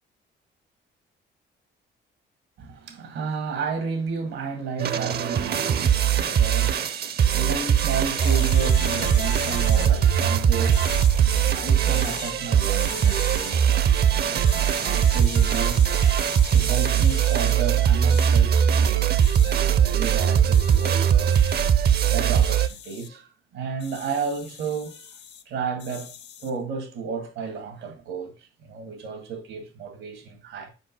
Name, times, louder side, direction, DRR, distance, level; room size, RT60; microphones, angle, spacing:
voice 1, 2.6-21.4 22.0-25.2 25.5-26.1 26.4-30.7, right 5 dB, 90° right, 2.1 m, -33 dB
sound 1, 4.8-22.7, right 9 dB, 55° right, 0.6 m, -21 dB
sound 2, 8.2-9.9 10.7-11.2 11.9-12.3 12.8-13.5 14.4-17.6 18.1-18.3 19.2-19.6 20.1-21.0 21.3-21.7 22.3-23.1 23.8-25.4 25.8-26.5, left 8 dB, 60° left, 0.7 m, -40 dB
sound 3, 8.7-13.5 13.8-13.9, left 2 dB, 80° left, 1.7 m, -35 dB
5.2 x 5.1 x 5.9 m
cardioid pair, 90°, 20 cm